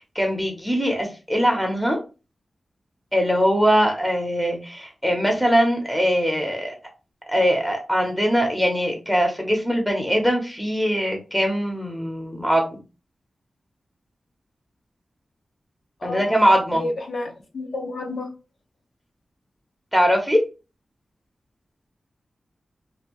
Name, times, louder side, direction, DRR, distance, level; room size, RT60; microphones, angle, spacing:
voice 1, 0.1-2.0 3.1-6.8 7.3-12.8 16.0-16.8 19.9-20.4, equal, ahead, 2 dB, 0.7 m, -21 dB
voice 2, 16.0-16.3 16.7-18.3, left 2 dB, 80° left, 2 dB, 0.8 m, -30 dB
2.7 x 2.6 x 2.9 m, 0.31 s
wide cardioid pair, 100°, 0 cm